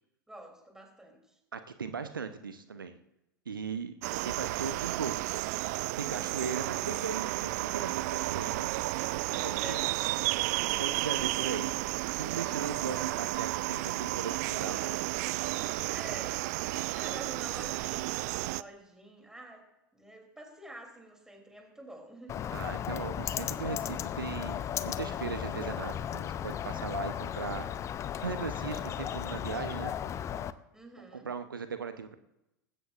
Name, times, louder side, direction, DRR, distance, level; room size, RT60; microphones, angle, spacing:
voice 1, 0.3-1.2 9.4-10.4 15.9-16.5 16.7-19.6 19.9-22.3 30.7-31.3, right 1 dB, 5° right, 2 dB, 3.2 m, -48 dB
voice 2, 1.5-2.9 3.5-3.9 4.2-5.4 6.0-8.7 9.1-9.8 10.7-11.7 12.2-15.0 22.5-27.7 28.2-29.9 31.0-32.2, right 5 dB, 80° right, 10 dB, 0.8 m, -38 dB
sound 1, 4.0-18.6, right 19 dB, 50° right, 0.4 m, -32 dB
Bird, 22.3-30.5, left 9 dB, 25° left, 0.6 m, -35 dB
19.5 x 16.0 x 2.5 m, 0.90 s
figure-of-eight pair, 85°, 11 cm